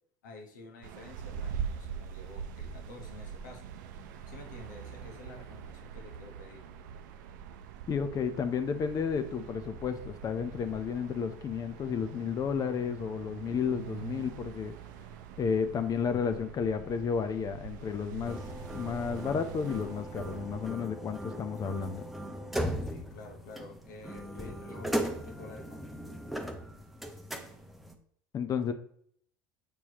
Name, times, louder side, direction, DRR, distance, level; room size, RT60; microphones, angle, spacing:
voice 1, 0.2-3.6 4.3-6.6 22.9-26.0, left 2 dB, 85° left, 1 dB, 1.4 m, -50 dB
sound 1, 0.8-20.7, right 7 dB, 75° right, 0.6 m, -43 dB
voice 2, 7.9-14.7 15.4-18.4 18.7-22.1 28.3-28.7, left 6 dB, 40° left, 9 dB, 0.7 m, -32 dB
sound 2, 18.2-27.9, equal, ahead, 0.8 m, -38 dB
7.1 x 4.6 x 3.0 m, 0.65 s
hypercardioid pair, 85°, 10 cm